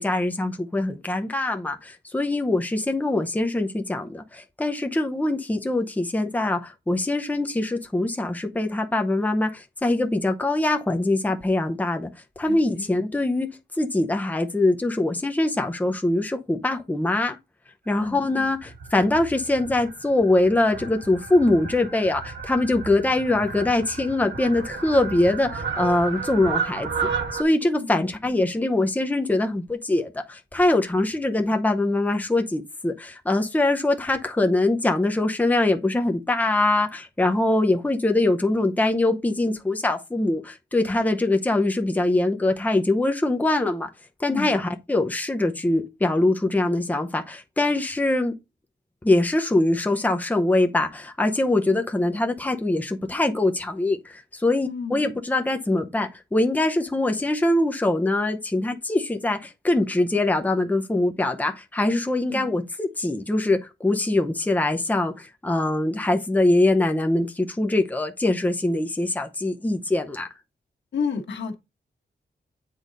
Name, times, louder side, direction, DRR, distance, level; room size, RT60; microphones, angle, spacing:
voice 1, 0.0-12.1 12.4-17.4 17.9-43.9 44.2-48.3 49.0-70.3, left 2 dB, 10° left, 0.7 m, -23 dB
voice 2, 12.5-12.9 18.0-18.2 27.8-28.1 31.5-31.6 44.3-44.5 51.7-51.8 54.6-55.0 62.3-62.4 70.9-71.5, left 5 dB, 90° left, 1.3 m, -31 dB
Fowl, 18.0-27.4, right 5 dB, 90° right, 1.3 m, -33 dB
8.2 x 3.9 x 3.9 m
wide cardioid pair, 155°, 18 cm